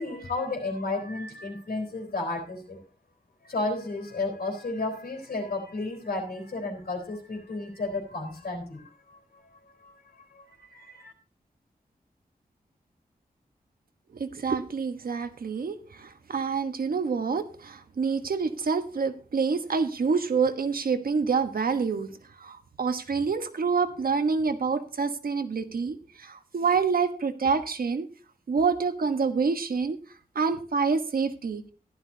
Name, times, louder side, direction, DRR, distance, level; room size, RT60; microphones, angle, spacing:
voice 1, 0.0-2.8 3.4-9.2 9.8-11.1, left 2 dB, 80° left, 5 dB, 3.9 m, -33 dB
voice 2, 14.1-22.1 22.4-28.1 28.5-30.0 30.3-31.6, right 5 dB, 70° right, 8 dB, 1.2 m, -27 dB
15.0 x 12.0 x 2.8 m, 0.36 s
wide cardioid pair, 105°, 15 cm